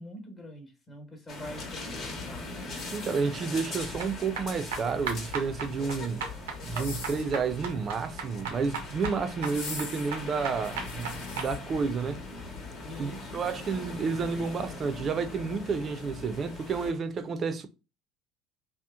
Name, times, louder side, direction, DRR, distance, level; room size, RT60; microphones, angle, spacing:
voice 1, 0.0-2.5 12.8-13.5, equal, 30° left, 1.1 m, -44 dB
sound 1, 1.3-16.9, left 3 dB, 55° left, 1.1 m, -41 dB
sound 2, 2.7-3.7 4.8-5.6 6.5-7.4 8.5-8.9 9.4-11.6 12.2-12.3, left 4 dB, 80° left, 0.7 m, -43 dB
voice 2, 2.9-6.3 6.6-12.2 13.0-17.7, right 5 dB, 40° right, 0.5 m, -31 dB
sound 3, 4.0-11.5, right 5 dB, 80° right, 0.6 m, -37 dB
2.9 x 2.1 x 2.3 m
hypercardioid pair, 70°, 0 cm